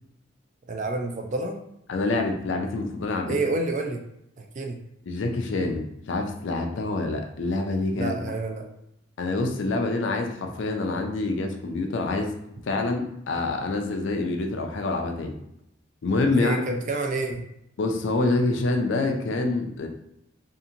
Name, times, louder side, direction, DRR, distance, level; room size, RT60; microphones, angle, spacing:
voice 1, 0.7-1.6 3.3-4.0 4.4-4.8 8.0-8.7 16.4-17.4, right 2 dB, 35° right, 3 dB, 0.3 m, -28 dB
voice 2, 1.9-3.4 5.0-8.2 9.2-12.3 12.7-15.3 16.0-16.7 17.8-19.9, left 2 dB, 60° left, 3 dB, 0.4 m, -26 dB
2.8 x 2.5 x 2.5 m, 0.79 s
head